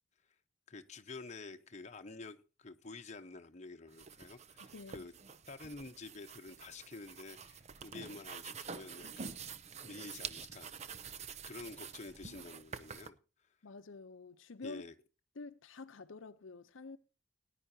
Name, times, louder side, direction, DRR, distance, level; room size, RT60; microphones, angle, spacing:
voice 1, 0.7-5.1 5.5-9.4 9.8-13.2 14.6-14.9, left 3 dB, 35° left, 0.9 m, -49 dB
sound 1, 3.9-13.1, right 6 dB, 35° right, 0.6 m, -48 dB
voice 2, 4.7-5.1 13.6-14.8 15.4-17.0, left 3 dB, 70° left, 0.7 m, -48 dB
18.5 x 10.0 x 2.7 m
head